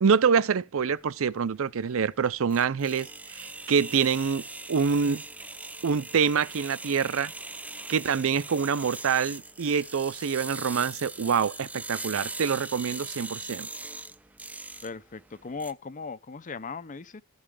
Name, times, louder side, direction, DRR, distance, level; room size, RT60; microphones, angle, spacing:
voice 1, 0.0-3.1 3.3-4.4 4.7-5.2 5.8-7.3 7.9-13.7, right 6 dB, 65° right, 0.5 m, -26 dB
sound 1, 1.0-15.7, right 3 dB, 5° right, 0.4 m, -41 dB
voice 2, 14.8-17.2, left 4 dB, 35° left, 0.6 m, -38 dB
14.5 x 5.5 x 4.8 m
head